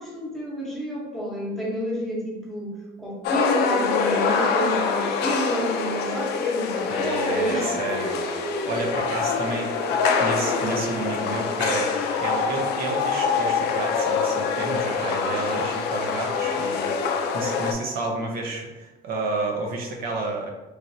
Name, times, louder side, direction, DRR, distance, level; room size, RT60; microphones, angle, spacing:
voice 1, 0.0-7.7 9.1-9.2, equal, ahead, -5 dB, 0.9 m, -29 dB
sound 1, 3.2-17.7, left 5 dB, 75° left, 0.4 m, -25 dB
voice 2, 6.9-8.2 8.6-9.7 10.1-20.5, right 2 dB, 60° right, 0 dB, 0.6 m, -30 dB
3.1 x 2.5 x 2.6 m, 1.1 s
cardioid pair, 110°, 17 cm